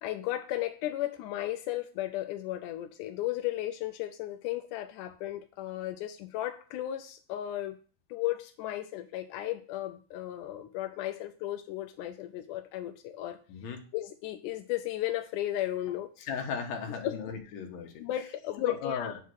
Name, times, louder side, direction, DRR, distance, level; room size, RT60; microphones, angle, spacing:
voice 1, 0.0-7.8 8.1-13.4 13.9-16.1 16.9-17.2 18.0-19.1, left 14 dB, 85° left, 7 dB, 1.8 m, -35 dB
voice 2, 13.5-13.8 16.2-18.0 18.6-19.2, left 7 dB, 60° left, 2 dB, 2.1 m, -35 dB
8.3 x 3.7 x 6.1 m, 0.40 s
omnidirectional pair, 4.2 m